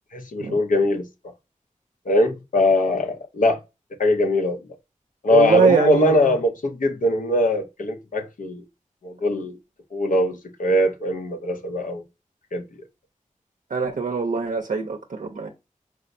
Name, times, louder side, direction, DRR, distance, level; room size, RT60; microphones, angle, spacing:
voice 1, 0.1-1.1 2.1-3.6 4.0-4.6 5.2-8.6 9.0-9.6 9.9-12.0 12.5-12.6, left 1 dB, 75° left, 0.7 m, -21 dB
voice 2, 5.3-6.2 13.7-15.5, right 4 dB, 75° right, 0.5 m, -22 dB
4.7 x 2.0 x 2.5 m
cardioid pair, 40°, 14 cm